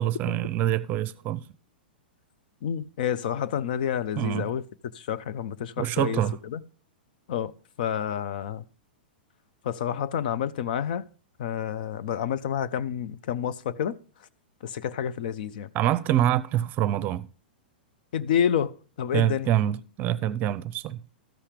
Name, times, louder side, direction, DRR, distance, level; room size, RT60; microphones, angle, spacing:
voice 1, 0.0-1.4 4.2-4.5 5.8-6.4 15.7-17.3 19.1-21.0, right 12 dB, 35° right, 0.6 m, -25 dB
voice 2, 2.6-4.6 4.9-6.6 7.3-7.5 7.8-8.6 9.6-11.1 11.4-14.0 14.6-15.7 18.1-19.5, left 9 dB, 60° left, 0.6 m, -29 dB
13.5 x 5.7 x 5.0 m
hypercardioid pair, 105°, 5 cm